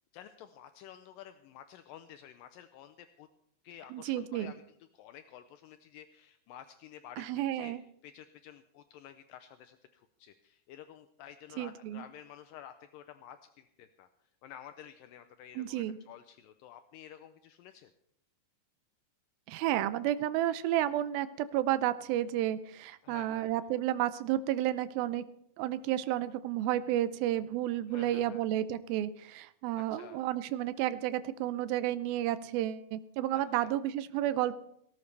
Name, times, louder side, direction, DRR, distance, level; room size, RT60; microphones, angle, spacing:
voice 1, 0.1-3.3 3.6-7.7 8.0-14.1 14.4-17.9 23.0-23.6 27.9-28.5 29.8-30.3 33.3-33.8, left 10 dB, 80° left, 9 dB, 2.3 m, -51 dB
voice 2, 3.9-4.5 7.2-7.8 11.6-12.0 15.6-16.0 19.5-25.2 25.6-34.6, right 13 dB, 85° right, 14 dB, 2.5 m, -31 dB
18.5 x 16.5 x 3.4 m, 0.71 s
omnidirectional pair, 4.2 m